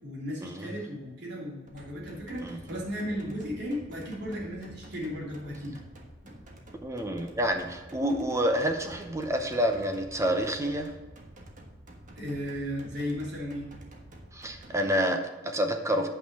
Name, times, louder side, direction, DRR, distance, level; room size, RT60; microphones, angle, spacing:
voice 1, 0.0-5.8 6.2-6.5 12.2-13.7, equal, 60° right, -4 dB, 2.9 m, -35 dB
sound 1, 1.7-14.7, right 1 dB, 40° right, 1.4 m, -49 dB
voice 2, 6.8-10.9 14.3-16.1, equal, 15° right, 5 dB, 0.7 m, -28 dB
8.9 x 5.7 x 6.1 m, 1.2 s
head